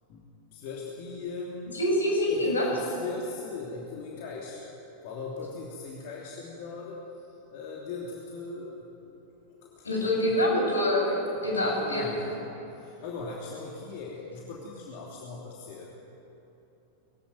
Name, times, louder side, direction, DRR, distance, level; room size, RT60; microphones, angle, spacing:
voice 1, 0.5-1.8 2.3-4.7 5.0-8.9 9.5-10.5 11.3-15.9, left 4 dB, 50° left, -3 dB, 3.0 m, -39 dB
voice 2, 1.7-2.6 9.8-12.0, left 1 dB, 75° left, -2 dB, 7.6 m, -25 dB
22.0 x 16.5 x 9.3 m, 3.0 s
figure-of-eight pair, 90°, 0 cm